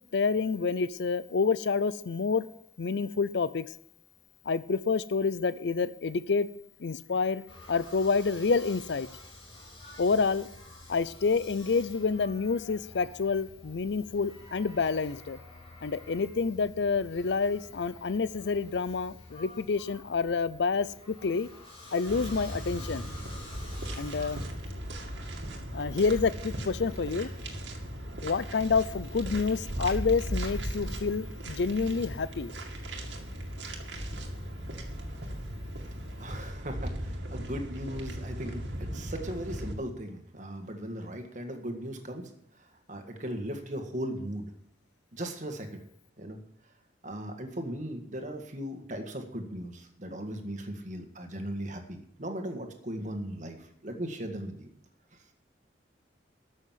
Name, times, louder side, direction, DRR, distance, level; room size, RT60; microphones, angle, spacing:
voice 1, 0.1-2.5 2.8-3.7 4.5-6.5 6.8-7.4 7.7-9.1 10.0-10.5 10.9-15.4 15.8-21.5 21.9-23.1 24.0-24.4 25.7-27.3 28.2-32.5, left 4 dB, 65° left, 16 dB, 0.5 m, -28 dB
sound 1, 7.5-24.4, left 1 dB, 30° left, 4.0 m, -50 dB
sound 2, 22.1-39.7, equal, 75° right, 2.1 m, -37 dB
voice 2, 36.2-42.3 42.6-44.5 45.1-45.8 46.2-46.4 47.0-54.7, right 1 dB, 40° right, 5 dB, 1.8 m, -38 dB
13.5 x 6.4 x 7.4 m, 0.70 s
head